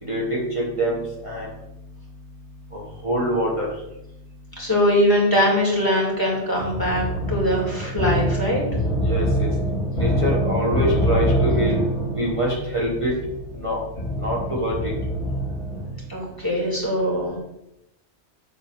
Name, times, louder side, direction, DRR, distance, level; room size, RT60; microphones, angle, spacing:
voice 1, 0.1-1.5 2.7-3.7 9.0-9.5 10.0-11.8 12.1-13.1 13.6-13.8 14.2-14.9, equal, 25° right, -6 dB, 1.6 m, -24 dB
voice 2, 4.6-8.6 16.1-17.4, equal, 15° left, -4 dB, 2.5 m, -22 dB
sound 1, 6.6-16.0, equal, 70° left, 2.5 m, -25 dB
7.9 x 3.9 x 5.8 m, 0.85 s
omnidirectional pair, 1.2 m